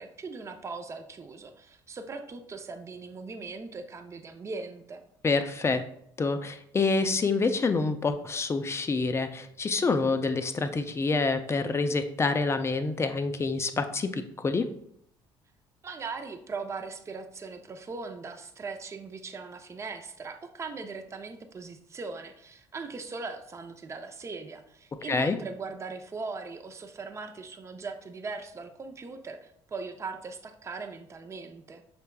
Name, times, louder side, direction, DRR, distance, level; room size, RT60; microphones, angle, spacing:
voice 1, 0.0-5.0 15.8-31.8, right 4 dB, 30° right, 7 dB, 0.5 m, -39 dB
voice 2, 5.2-5.8 6.2-14.7 25.1-25.4, left 3 dB, 25° left, 9 dB, 0.4 m, -27 dB
5.6 x 3.4 x 2.2 m, 0.70 s
supercardioid pair, 85°, 10 cm